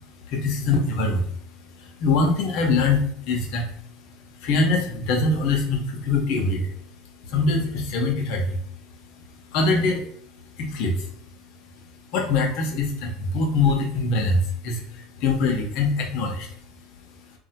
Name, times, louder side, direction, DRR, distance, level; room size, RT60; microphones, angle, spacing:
voice 1, 0.3-1.3 1.8-3.7 4.4-6.7 7.2-8.6 9.5-10.0 10.6-11.1 12.1-16.5, left 3 dB, 60° left, 2 dB, 0.8 m, -23 dB
2.7 x 2.1 x 4.0 m, 0.64 s
supercardioid pair, 135°, 0 cm